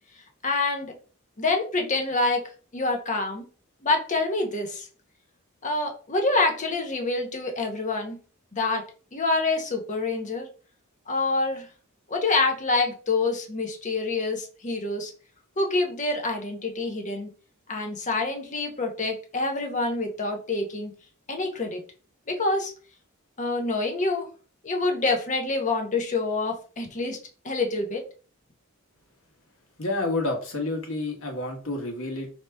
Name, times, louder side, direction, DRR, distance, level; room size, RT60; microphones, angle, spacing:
voice 1, 0.4-0.9 1.4-2.4 2.7-3.4 3.8-4.9 5.6-8.2 8.5-8.8 9.1-10.5 11.1-11.7 12.1-15.1 15.6-17.3 17.7-20.9 21.3-21.8 22.3-22.7 23.4-24.3 24.6-27.2 27.4-28.0, left 3 dB, 35° left, 3 dB, 0.9 m, -26 dB
voice 2, 29.8-32.3, left 2 dB, 60° left, 1 dB, 1.3 m, -29 dB
4.8 x 2.9 x 3.3 m, 0.38 s
head